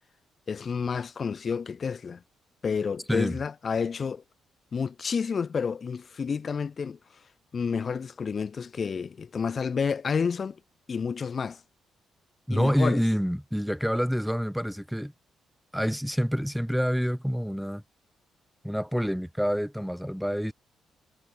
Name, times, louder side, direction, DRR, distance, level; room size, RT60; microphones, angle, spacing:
voice 1, 0.5-2.2 2.6-4.2 4.7-7.0 7.5-10.6 10.9-11.6 12.5-13.0, left 6 dB, 40° left, 2.6 m, -30 dB
voice 2, 12.5-15.1 15.7-17.8 18.6-20.5, equal, ahead, 8.0 m, -27 dB
cardioid pair, 90°, 0 cm